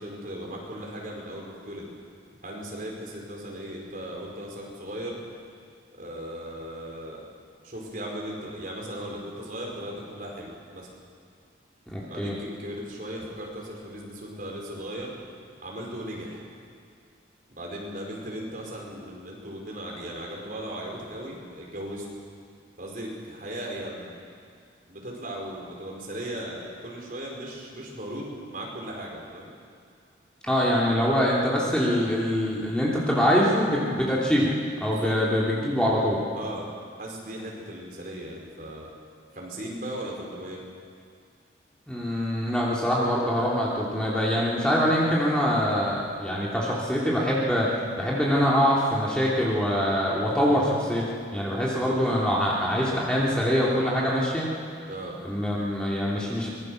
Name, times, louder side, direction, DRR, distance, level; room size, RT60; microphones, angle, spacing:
voice 1, 0.0-1.9 2.4-5.2 5.9-7.3 7.6-10.9 12.1-15.2 15.6-16.4 17.5-22.1 22.8-24.1 24.9-29.5 34.9-35.2 36.3-36.7 37.0-38.9 39.3-40.6 54.9-55.2, right 1 dB, 45° right, -2 dB, 4.9 m, -37 dB
voice 2, 11.9-12.3 30.4-34.5 34.8-36.2 41.9-54.5 55.2-56.5, equal, 5° left, -5 dB, 2.9 m, -24 dB
24.5 x 20.5 x 6.5 m, 2.2 s
head